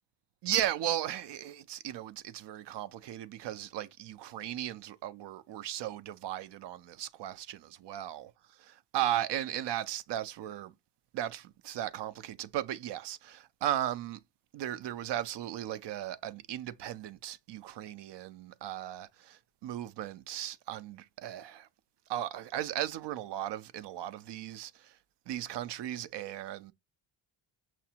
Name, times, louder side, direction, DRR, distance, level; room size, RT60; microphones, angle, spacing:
voice 1, 0.4-8.3 8.9-10.7 11.1-14.2 14.5-21.7 22.1-25.0 25.3-26.7, right 12 dB, 60° right, 0.5 m, -36 dB
6.0 x 2.5 x 2.7 m
cardioid pair, 180°, 48 cm